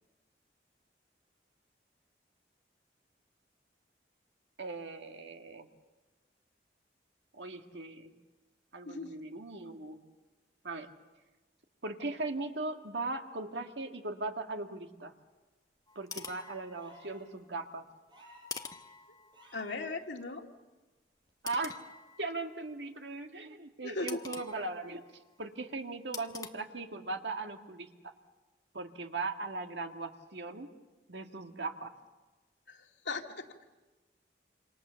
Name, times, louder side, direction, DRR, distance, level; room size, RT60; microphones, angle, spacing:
voice 1, 4.6-5.7 7.3-8.1 8.7-10.0 10.6-10.9 11.8-15.1 16.0-17.8 21.4-21.8 22.2-25.0 25.4-28.1 28.7-30.7 31.1-31.9, right 3 dB, 80° right, 5 dB, 1.9 m, -39 dB
sound 1, 15.9-17.3 18.5-19.7 21.5-22.7 24.1-25.4 26.1-26.5, left 5 dB, 20° left, 1.0 m, -46 dB
sound 2, 16.7-17.3 18.1-18.6 19.3-19.8 21.3-21.4, left 1 dB, 25° right, 5.2 m, -56 dB
voice 2, 19.5-20.5 23.8-24.2 32.7-33.5, left 3 dB, 90° left, 3 dB, 2.1 m, -38 dB
27.5 x 26.5 x 7.0 m, 1.2 s
head